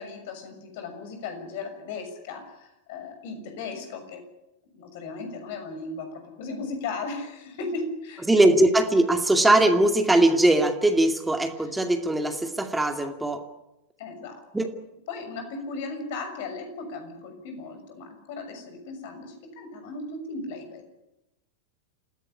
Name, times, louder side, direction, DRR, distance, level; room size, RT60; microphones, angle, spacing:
voice 1, 0.0-4.2 4.7-8.3 11.6-11.7 14.0-14.4 15.1-20.9, left 3 dB, 50° left, 6 dB, 6.5 m, -36 dB
voice 2, 8.3-13.4 14.5-14.7, right 1 dB, 5° right, 5 dB, 2.4 m, -20 dB
27.5 x 16.5 x 9.9 m, 0.94 s
figure-of-eight pair, 90°, 0 cm